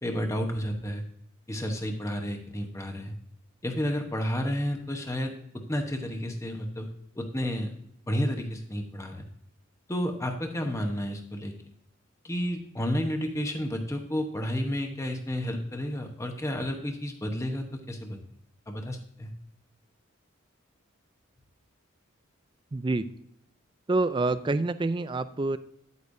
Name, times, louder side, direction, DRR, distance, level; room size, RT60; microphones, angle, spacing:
voice 1, 0.0-1.0 1.5-3.1 3.6-6.9 7.2-7.7 8.1-9.2 9.9-11.5 12.2-18.2 18.7-19.3, equal, 15° left, 4 dB, 1.0 m, -31 dB
voice 2, 22.7-23.1 23.9-25.6, right 2 dB, 20° right, 13 dB, 0.3 m, -27 dB
10.5 x 8.3 x 2.7 m, 0.69 s
head